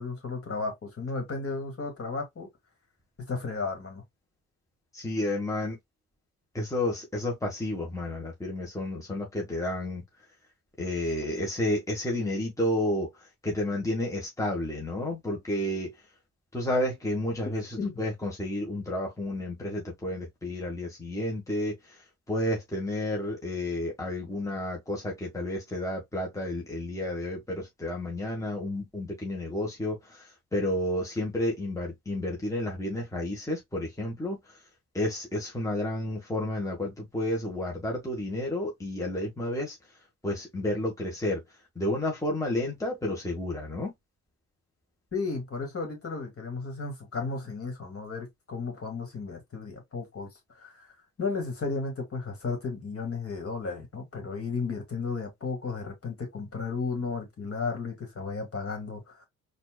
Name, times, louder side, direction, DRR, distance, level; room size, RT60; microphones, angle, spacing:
voice 1, 0.0-2.5 3.3-4.0 17.8-17.9 45.1-50.3 50.6-50.9 51.2-59.3, left 4 dB, 35° left, 2.2 m, -34 dB
voice 2, 4.9-5.8 6.5-10.0 10.8-13.1 13.4-15.9 16.5-34.6 34.9-39.8 40.2-41.4 41.7-43.9, left 1 dB, 10° left, 1.4 m, -31 dB
4.3 x 2.7 x 2.3 m
hypercardioid pair, 50°, 37 cm